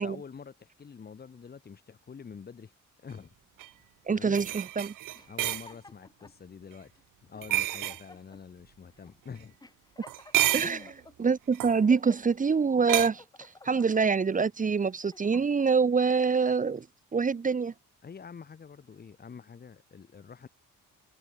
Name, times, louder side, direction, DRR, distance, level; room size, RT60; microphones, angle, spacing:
voice 1, 0.0-2.7 3.0-3.3 4.1-4.4 5.3-6.9 7.2-9.6 10.6-10.9 18.0-20.5, left 6 dB, 30° left, 6.0 m, -46 dB
sound 1, 3.6-3.7 4.3-5.7 7.4-8.0 10.1-10.8 11.5-11.8 12.9-13.1, right 14 dB, 85° right, 2.0 m, -29 dB
voice 2, 4.1-4.9 10.5-10.8 11.2-16.9 17.1-17.7, right 5 dB, 25° right, 2.3 m, -25 dB
sound 2, 5.1-6.4 7.0-7.1 7.3-8.4 9.0-9.1 9.6-11.1 11.6-12.3 12.8-14.1 14.7-15.7, left 2 dB, 10° left, 6.8 m, -52 dB
cardioid pair, 175°, 31 cm